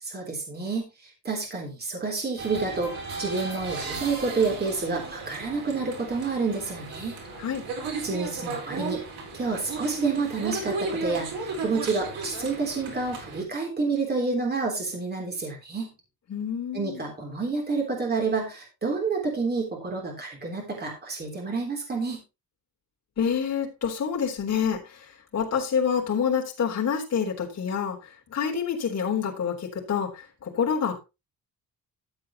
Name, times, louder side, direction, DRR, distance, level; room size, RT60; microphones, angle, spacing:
voice 1, 0.0-2.9 3.2-7.2 8.0-9.0 9.3-15.9 16.7-22.2, right 4 dB, 25° right, 0 dB, 3.5 m, -29 dB
sound 1, 2.4-13.4, right 3 dB, 80° right, 4.5 m, -35 dB
voice 2, 16.3-17.0 23.2-31.0, left 7 dB, 45° left, -1 dB, 3.7 m, -27 dB
13.5 x 8.1 x 3.0 m, 0.26 s
cardioid pair, 175°, 36 cm